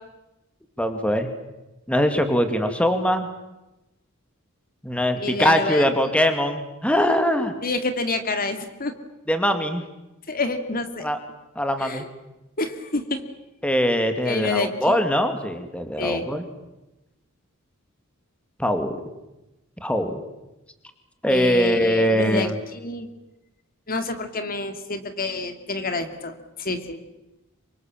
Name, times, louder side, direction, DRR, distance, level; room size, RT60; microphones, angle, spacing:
voice 1, 0.8-1.3 1.9-3.3 4.8-7.5 9.3-9.9 11.0-11.2 11.6-12.0 13.6-16.4 18.6-19.0 19.8-20.2 21.2-22.6, equal, 5° left, 7 dB, 2.3 m, -22 dB
voice 2, 5.2-5.9 7.6-8.9 10.3-11.1 11.8-12.0 12.6-13.2 14.3-14.9 16.0-16.3 21.3-23.1 23.9-27.0, left 3 dB, 45° left, 8 dB, 2.4 m, -28 dB
27.0 x 25.5 x 7.5 m, 0.99 s
head